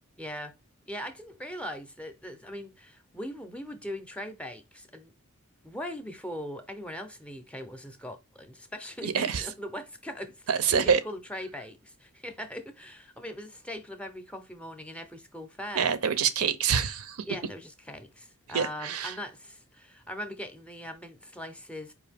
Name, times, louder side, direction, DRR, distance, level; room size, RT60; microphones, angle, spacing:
voice 1, 0.2-0.5 0.9-5.1 5.6-15.9 17.3-21.9, equal, 5° left, 0.5 m, -40 dB
voice 2, 9.0-9.5 10.5-11.0 15.8-17.2 18.5-19.1, right 7 dB, 70° right, 0.5 m, -26 dB
4.8 x 2.7 x 3.4 m
head